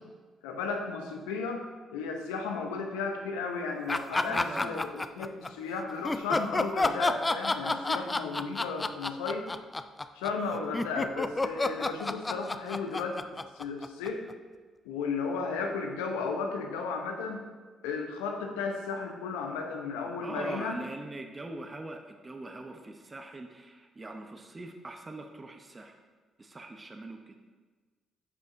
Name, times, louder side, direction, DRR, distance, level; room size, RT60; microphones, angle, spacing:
voice 1, 0.4-1.6 1.9-9.5 10.2-13.2 13.6-14.2 14.8-17.4 17.8-20.8, left 4 dB, 90° left, 3 dB, 0.7 m, -34 dB
sound 1, 3.9-5.5 6.0-14.3, left 2 dB, 25° left, 0.3 m, -30 dB
voice 2, 4.2-4.9 6.3-6.4 20.2-26.0 26.4-27.5, right 2 dB, 30° right, 4 dB, 0.7 m, -42 dB
9.5 x 5.2 x 2.6 m, 1.4 s
hypercardioid pair, 55°, 0 cm